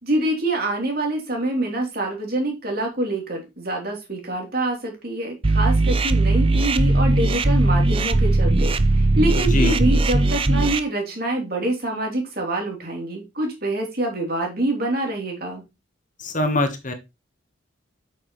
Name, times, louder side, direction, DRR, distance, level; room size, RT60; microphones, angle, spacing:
voice 1, 0.0-15.6, right 1 dB, 45° right, 1 dB, 3.2 m, -26 dB
sound 1, 5.4-10.8, right 2 dB, 25° right, 0.5 m, -19 dB
voice 2, 16.2-16.9, left 2 dB, 40° left, 7 dB, 1.3 m, -22 dB
8.6 x 6.4 x 3.1 m, 0.24 s
head